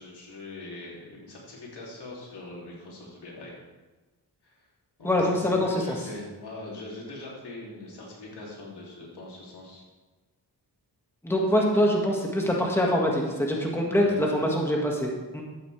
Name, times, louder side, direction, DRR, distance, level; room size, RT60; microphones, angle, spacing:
voice 1, 0.0-3.6 4.4-4.5 5.0-9.8 13.9-14.1, left 2 dB, 80° left, -4 dB, 3.2 m, -41 dB
voice 2, 5.0-5.8 11.2-15.4, equal, 5° left, -1 dB, 2.0 m, -24 dB
12.5 x 8.5 x 3.5 m, 1.2 s
cardioid pair, 80°, 40 cm